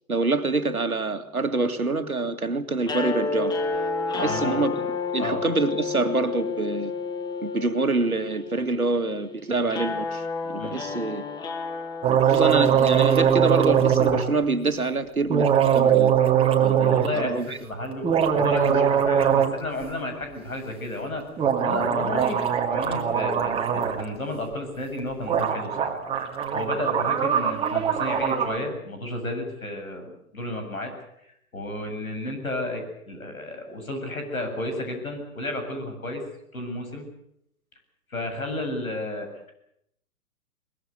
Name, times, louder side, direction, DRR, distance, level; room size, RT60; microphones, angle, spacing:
voice 1, 0.1-3.6 4.1-4.9 5.1-6.9 7.4-11.2 12.1-15.5 15.7-16.1 16.6-17.6, right 3 dB, 80° right, 9 dB, 2.3 m, -26 dB
sound 1, 2.8-13.0, left 4 dB, 10° left, 1.4 m, -31 dB
voice 2, 4.2-4.6 5.2-5.4 10.6-10.8 16.8-21.2 21.6-26.0 26.5-30.9 31.5-36.2 36.5-37.1 38.1-39.5, left 1 dB, 75° left, 5 dB, 7.9 m, -32 dB
sound 2, 12.0-14.2 15.3-17.1 17.9-19.6 19.8-19.9 21.4-24.0 25.0-25.1 25.3-28.6, right 8 dB, 15° right, 2.2 m, -21 dB
22.5 x 21.0 x 8.3 m, 0.73 s
figure-of-eight pair, 115°, 42 cm